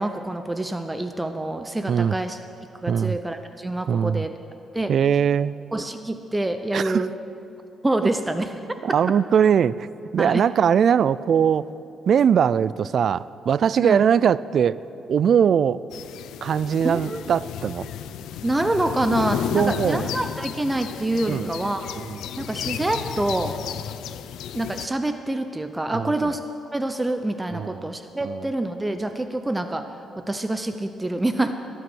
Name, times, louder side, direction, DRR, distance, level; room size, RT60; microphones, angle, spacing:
voice 1, 0.0-2.4 2.7-4.3 4.7-4.9 5.7-7.1 7.8-8.5 10.2-10.4 13.8-14.1 16.8-17.3 18.4-22.0 22.4-23.6 24.5-26.4 26.7-29.9 30.2-31.5, right 1 dB, 15° right, 8 dB, 0.7 m, -26 dB
voice 2, 2.9-3.2 3.9-4.2 4.9-5.6 6.7-7.1 8.0-8.1 8.8-9.9 10.1-11.7 12.1-14.8 15.1-15.8 16.4-17.9 19.5-20.1 21.3-21.5 22.1-22.2 25.9-26.3 27.5-27.9 28.2-28.5, right 8 dB, 60° right, 19 dB, 0.3 m, -21 dB
sound 1, 15.9-24.9, left 9 dB, 90° left, 0.5 m, -33 dB
20.5 x 9.3 x 6.3 m, 2.7 s
cardioid pair, 85°, 0 cm